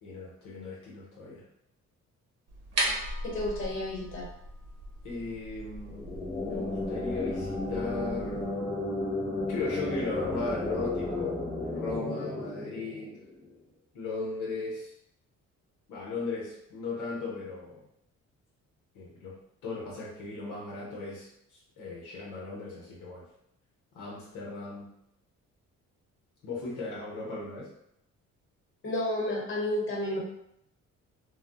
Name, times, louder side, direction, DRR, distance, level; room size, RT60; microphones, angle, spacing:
voice 1, 0.0-1.4 5.0-8.6 9.5-11.4 11.7-13.2 13.9-14.9 15.9-17.8 18.9-23.3 23.9-24.9 26.4-27.7, left 3 dB, 90° left, -4 dB, 0.9 m, -37 dB
sound 1, 2.5-8.4, right 1 dB, 55° right, 0.8 m, -37 dB
voice 2, 3.2-4.3 28.8-30.2, left 1 dB, 40° left, -3 dB, 1.3 m, -31 dB
sound 2, 5.9-13.5, left 2 dB, 20° left, 0.5 m, -33 dB
2.3 x 2.2 x 3.8 m, 0.76 s
cardioid pair, 90°, 30 cm